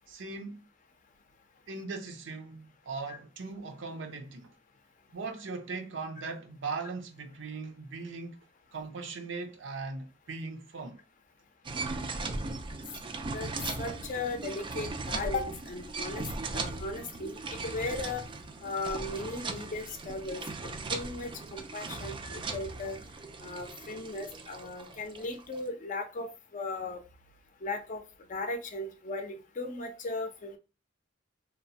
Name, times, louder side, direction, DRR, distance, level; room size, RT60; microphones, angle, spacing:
voice 1, 0.1-0.6 1.7-4.5 5.1-8.4 8.7-11.0, right 4 dB, 70° right, 0.6 m, -39 dB
sound 1, 11.6-25.6, right 3 dB, 25° right, 0.3 m, -38 dB
voice 2, 13.8-16.3 16.5-18.2 18.6-20.4 20.9-23.0 23.4-27.0 27.6-28.0 28.3-30.6, left 2 dB, 40° left, 0.5 m, -37 dB
2.9 x 2.1 x 2.7 m
head